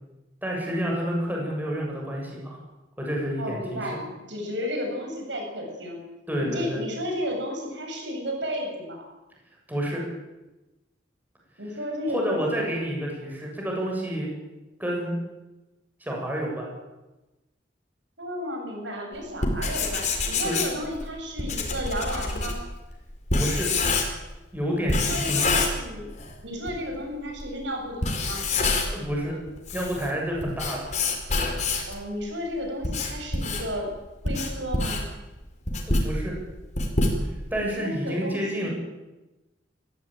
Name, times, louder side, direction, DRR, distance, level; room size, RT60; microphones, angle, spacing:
voice 1, 0.4-2.6 3.0-3.8 6.3-6.8 9.7-10.0 12.1-14.3 14.8-15.2 16.0-16.7 20.4-20.6 23.3-23.7 24.5-25.5 28.9-29.4 29.7-30.9 35.8-36.4 37.5-38.7, equal, 10° right, -1 dB, 7.4 m, -29 dB
voice 2, 3.4-6.0 6.4-9.1 11.6-12.6 18.2-22.6 24.9-26.1 26.4-28.4 31.9-33.9 34.2-35.1 37.6-38.7, equal, 75° right, 2 dB, 7.4 m, -33 dB
Writing, 19.3-24.4 24.9-26.3 26.7-26.8 27.4-27.5 27.9-29.1 29.5-32.0 32.6-37.6, left 3 dB, 40° left, 4.8 m, -26 dB
24.0 x 15.5 x 9.2 m, 1.0 s
head